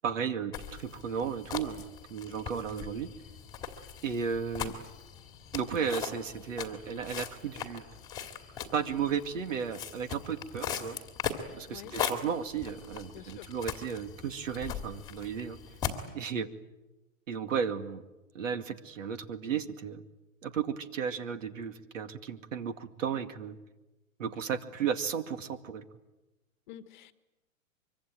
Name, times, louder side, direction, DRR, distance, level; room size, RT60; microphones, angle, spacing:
voice 1, 0.0-1.8 2.1-3.1 4.0-4.7 5.5-7.8 8.7-11.0 11.5-15.6 16.1-16.5 17.3-18.0 18.3-20.0 20.4-23.6 24.2-25.9, right 7 dB, 70° right, 10 dB, 2.3 m, -34 dB
sound 1, 0.5-16.1, left 8 dB, 10° left, 1.9 m, -40 dB
voice 2, 13.1-13.5 26.7-27.1, left 11 dB, 35° left, 12 dB, 1.4 m, -48 dB
24.5 x 24.5 x 9.1 m, 1.0 s
hypercardioid pair, 170°, 40 cm